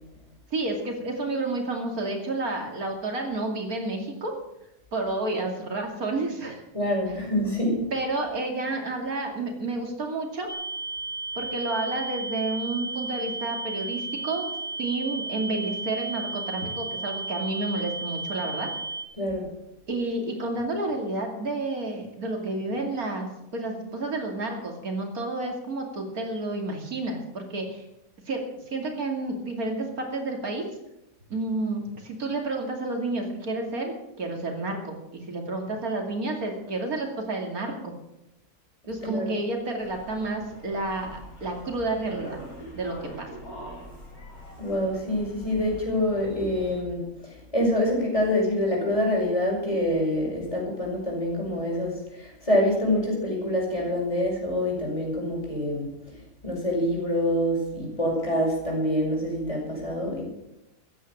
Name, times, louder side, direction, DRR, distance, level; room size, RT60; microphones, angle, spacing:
voice 1, 0.5-4.3 4.9-6.6 7.9-10.5 11.3-14.5 14.8-18.7 19.9-27.8 28.3-28.4 28.7-30.7 31.3-37.9 38.9-42.4 42.7-43.3, right 2 dB, 80° right, 2 dB, 3.1 m, -30 dB
voice 2, 6.7-7.8 19.2-19.5 39.0-39.3 44.6-55.9 56.4-60.2, left 1 dB, 20° left, -1 dB, 5.8 m, -26 dB
sound 1, 10.5-19.0, right 3 dB, 5° right, 3.1 m, -34 dB
sound 2, 39.8-46.8, equal, 75° left, 5.0 m, -43 dB
15.0 x 10.0 x 7.4 m, 0.87 s
omnidirectional pair, 1.5 m